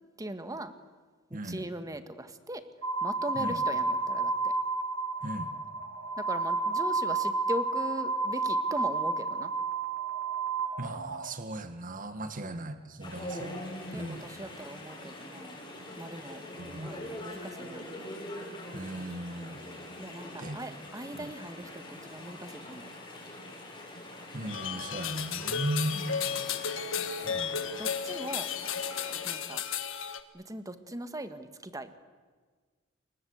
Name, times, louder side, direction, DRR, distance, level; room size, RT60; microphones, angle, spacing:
voice 1, 0.2-0.7 1.3-2.6 3.0-4.5 6.2-9.5 12.4-12.7 13.9-15.6 16.0-17.8 20.0-22.9 25.9-26.2 27.0-27.4 27.8-28.5 29.2-29.6 30.3-32.0, right 1 dB, 15° right, 10 dB, 1.6 m, -40 dB
voice 2, 1.3-1.6 3.3-3.6 5.2-5.5 10.8-13.6 13.9-14.2 16.6-17.0 18.7-19.6 20.4-20.6 21.1-21.3 24.3-26.0 27.2-27.6, right 1 dB, 40° right, 9 dB, 1.8 m, -37 dB
sound 1, 2.8-11.3, right 3 dB, 75° right, 2.0 m, -31 dB
Chatter / Stream, 13.0-29.3, left 1 dB, 25° left, 7.6 m, -44 dB
sound 2, 24.5-30.2, left 7 dB, 65° left, 1.7 m, -34 dB
28.5 x 23.5 x 8.1 m, 1.5 s
head